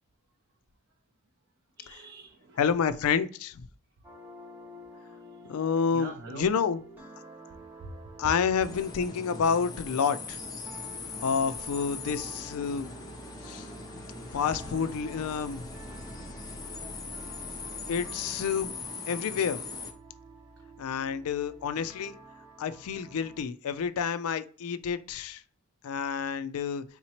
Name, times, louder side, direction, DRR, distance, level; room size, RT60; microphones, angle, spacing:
voice 1, 1.8-2.6 5.4-5.5 5.9-6.4 7.8-8.1 13.9-14.9 15.2-15.3 15.9-16.7, right 2 dB, 55° right, 0.5 m, -47 dB
voice 2, 2.6-3.6 5.4-6.8 8.2-10.4 11.2-12.9 13.4-13.7 14.3-15.6 17.9-18.7 19.1-19.6 20.8-22.2 22.6-25.4 25.8-26.8, left 6 dB, 80° left, 0.4 m, -29 dB
sound 1, 4.0-23.4, right 1 dB, 10° right, 0.8 m, -49 dB
sound 2, 8.6-19.9, left 4 dB, 15° left, 0.4 m, -41 dB
3.9 x 2.9 x 2.8 m
head